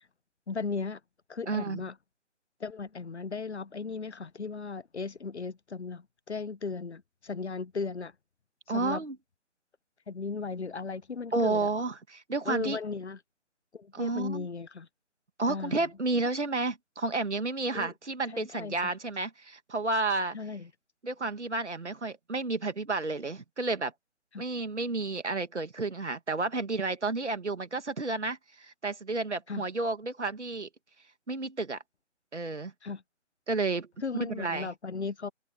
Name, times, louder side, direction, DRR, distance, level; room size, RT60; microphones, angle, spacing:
voice 1, 0.5-1.0 1.3-1.9 2.6-8.1 8.7-9.0 10.1-11.7 12.4-13.2 13.7-14.9 15.5-15.8 17.7-17.9 18.3-18.7 20.3-20.7 24.3-24.4 29.5-29.7 32.8-33.0 34.0-35.3, left 4 dB, 65° left, 1.2 m, -36 dB
voice 2, 1.5-1.8 8.7-9.2 11.3-12.8 13.9-14.5 15.4-20.4 21.0-23.9 24.4-30.7 31.3-31.8 32.3-32.7 33.5-33.9 34.3-34.7, right 3 dB, 70° right, 2.6 m, -31 dB
figure-of-eight pair, 145°, 36 cm